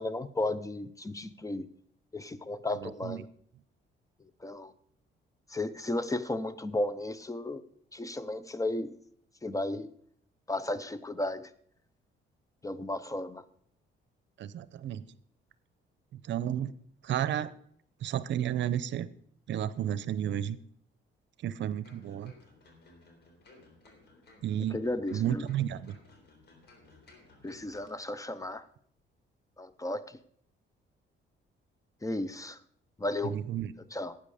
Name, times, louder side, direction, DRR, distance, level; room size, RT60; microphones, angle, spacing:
voice 1, 0.0-1.7 2.1-3.3 4.4-4.7 5.5-7.6 7.9-8.9 9.4-9.9 10.5-11.5 12.6-13.4 24.7-25.4 27.4-28.6 29.6-30.2 32.0-32.6 33.0-33.4 33.9-34.2, left 2 dB, 15° left, 15 dB, 0.7 m, -34 dB
voice 2, 2.8-3.2 14.4-15.0 16.1-16.7 17.0-17.5 18.0-19.1 19.5-20.6 21.4-22.3 24.4-24.8 25.1-25.9 33.2-33.7, right 10 dB, 70° right, 16 dB, 0.7 m, -32 dB
sound 1, 21.8-28.1 28.4-28.5, left 2 dB, 55° left, 3.6 m, -58 dB
12.0 x 9.0 x 5.0 m, 0.65 s
cardioid pair, 90°, 20 cm